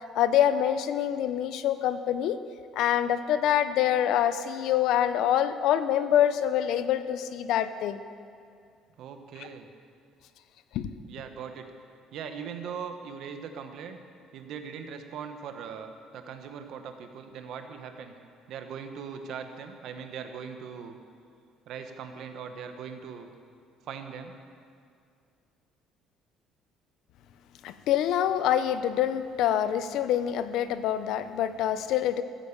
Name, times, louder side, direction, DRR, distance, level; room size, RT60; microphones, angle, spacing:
voice 1, 0.1-2.4 2.8-8.0 10.7-10.9 27.6-32.2, left 10 dB, 65° left, 12 dB, 0.6 m, -25 dB
voice 2, 9.0-9.7 11.0-11.7 12.1-14.0 14.3-18.1 18.5-21.0 21.7-23.3 23.8-24.3, right 7 dB, 60° right, 7 dB, 1.2 m, -40 dB
14.5 x 8.5 x 7.2 m, 2.4 s
cardioid pair, 155°, 0 cm